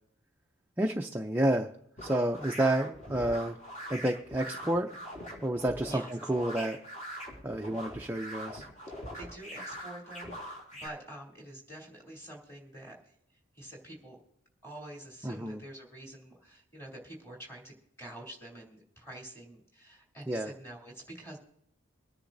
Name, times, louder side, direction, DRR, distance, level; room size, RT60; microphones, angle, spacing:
voice 1, 0.8-1.7 2.0-3.6 3.9-4.9 5.4-6.8 7.4-8.6 15.2-15.6 20.3-20.5, right 1 dB, 10° right, 2 dB, 0.4 m, -30 dB
sound 1, 2.0-10.9, equal, 35° left, 4.4 m, -43 dB
voice 2, 9.2-13.0 13.5-14.2 14.6-21.4, right 1 dB, 10° left, -2 dB, 3.0 m, -47 dB
24.5 x 10.0 x 2.6 m, 0.76 s
head